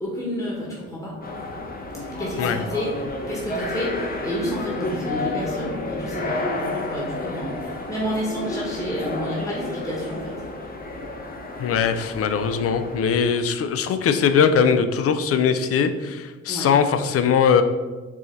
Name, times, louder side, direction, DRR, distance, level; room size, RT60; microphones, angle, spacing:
voice 1, 0.0-1.2 2.2-10.3 16.5-16.7, equal, 10° left, -5 dB, 1.2 m, -30 dB
sound 1, 1.2-13.4, left 2 dB, 30° left, 0.8 m, -31 dB
voice 2, 11.6-17.6, left 6 dB, 50° left, 9 dB, 0.4 m, -20 dB
4.8 x 2.8 x 3.8 m, 1.3 s
cardioid pair, 90°, 30 cm